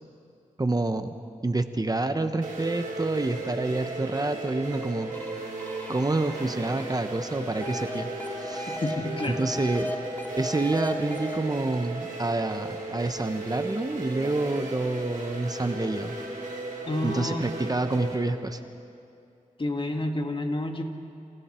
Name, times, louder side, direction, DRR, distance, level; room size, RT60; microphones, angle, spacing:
voice 1, 0.6-1.1 1.4-5.1 5.9-8.8 9.3-9.9 10.4-16.1 17.0-18.6, right 2 dB, 30° right, 8 dB, 1.0 m, -28 dB
sound 1, 2.4-18.2, right 2 dB, 75° right, 4.3 m, -36 dB
sound 2, 5.1-8.9 9.2-11.4, equal, 15° left, 2.6 m, -37 dB
voice 2, 8.7-9.4 16.8-17.4 19.6-20.8, left 1 dB, 40° left, 3 dB, 2.1 m, -29 dB
29.0 x 28.5 x 4.5 m, 2.6 s
wide cardioid pair, 75°, 14 cm